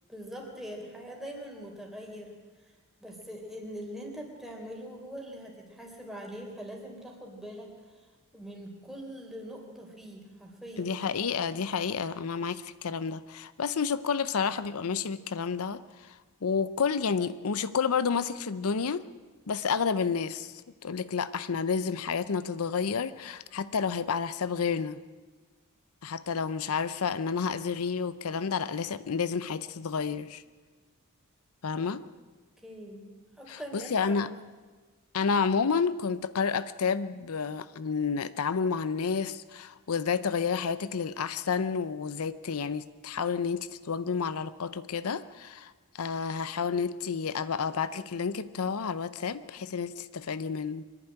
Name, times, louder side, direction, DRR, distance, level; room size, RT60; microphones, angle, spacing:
voice 1, 0.1-2.4 3.0-8.1 8.3-10.9 31.8-31.9 32.6-33.1 33.4-34.3, equal, ahead, 0 dB, 3.7 m, -43 dB
voice 2, 10.8-19.0 19.5-25.0 26.0-30.4 31.6-32.0 33.5-34.3 35.1-50.9, left 5 dB, 80° left, 15 dB, 0.6 m, -30 dB
24.5 x 11.0 x 9.9 m, 1.4 s
head